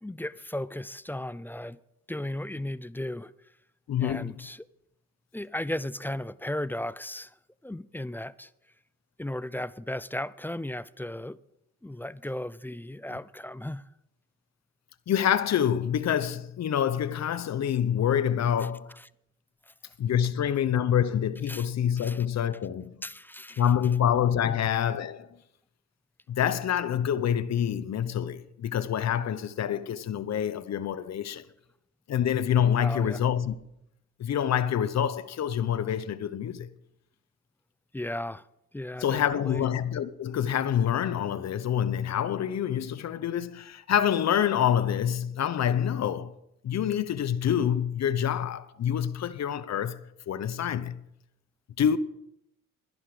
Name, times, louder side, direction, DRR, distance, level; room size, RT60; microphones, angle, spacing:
voice 1, 0.0-1.8 2.1-3.3 4.0-4.7 5.3-7.3 7.6-8.5 9.2-11.4 11.8-13.8 18.6-19.1 19.7-19.8 21.5-21.7 22.0-22.3 23.0-23.6 24.4-24.6 32.8-33.2 37.9-38.5 38.7-39.7, left 1 dB, 5° left, 0.4 m, -35 dB
voice 2, 3.9-4.3 15.1-18.9 20.0-23.0 23.6-25.3 26.3-31.4 32.1-33.6 34.2-36.7 39.0-46.3 46.6-50.0 50.3-51.0 51.8-52.0, left 9 dB, 55° left, 0.9 m, -26 dB
12.5 x 11.0 x 5.0 m
cardioid pair, 75°, 31 cm